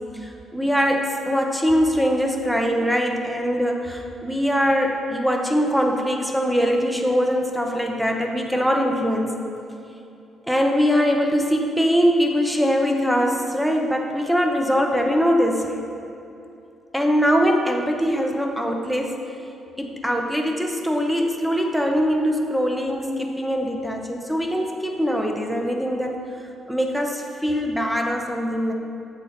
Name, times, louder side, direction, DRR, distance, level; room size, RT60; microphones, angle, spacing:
voice 1, 0.2-9.3 10.5-15.7 16.9-19.2 19.8-26.2 26.7-28.7, equal, ahead, 2 dB, 0.8 m, -22 dB
7.5 x 4.0 x 5.7 m, 2.7 s
cardioid pair, 90°, 0 cm